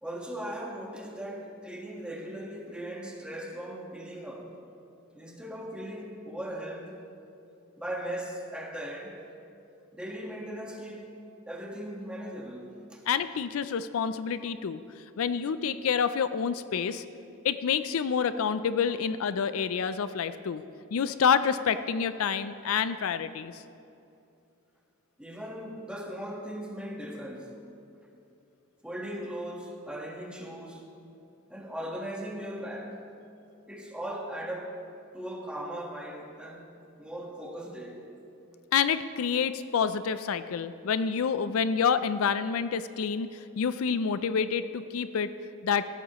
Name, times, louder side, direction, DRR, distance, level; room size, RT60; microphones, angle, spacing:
voice 1, 0.0-4.5 5.1-6.9 7.8-9.2 9.9-13.0 13.3-13.5 25.2-27.5 28.8-30.9 31.5-33.0 33.7-34.9 35.1-36.7 37.0-38.1, right 1 dB, 5° right, -1 dB, 1.4 m, -38 dB
voice 2, 13.1-14.8 15.2-17.0 17.4-20.6 20.9-23.6 38.7-45.3 45.6-45.8, left 6 dB, 75° left, 13 dB, 0.4 m, -28 dB
16.5 x 13.5 x 3.0 m, 2.7 s
head